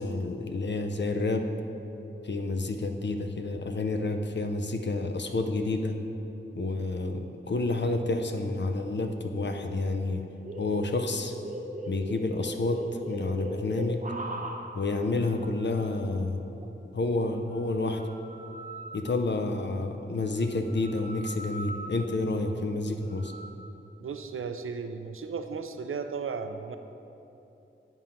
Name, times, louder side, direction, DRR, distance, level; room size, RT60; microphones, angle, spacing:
voice 1, 0.0-1.5 2.2-6.0 6.6-10.2 10.6-11.3 11.9-14.0 14.7-16.4 16.9-18.0 18.9-23.3, left 2 dB, 60° left, 6 dB, 0.6 m, -29 dB
sound 1, 10.4-14.8 15.2-15.9 16.6-16.7 17.6-19.1 20.3-22.2 23.1-23.5, right 1 dB, 40° right, 0.7 m, -40 dB
voice 2, 24.0-26.8, right 5 dB, 90° right, 8 dB, 0.4 m, -35 dB
9.0 x 3.8 x 5.7 m, 2.9 s
wide cardioid pair, 75°, 21 cm